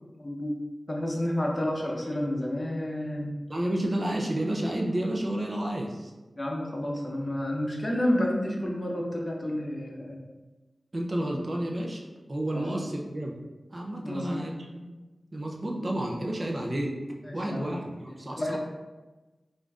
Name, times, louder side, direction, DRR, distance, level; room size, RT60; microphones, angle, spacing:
voice 1, 0.2-0.5 0.9-3.3 6.4-10.2 12.5-12.6 14.0-14.4 17.3-17.8 18.4-18.6, left 1 dB, 35° left, -1 dB, 0.8 m, -30 dB
voice 2, 3.5-6.1 10.9-12.0 12.3-13.3 13.7-14.9 15.3-16.9 17.3-18.6, right 1 dB, 45° right, -1 dB, 0.5 m, -31 dB
5.0 x 2.6 x 2.4 m, 1.2 s
cardioid pair, 40°, 0 cm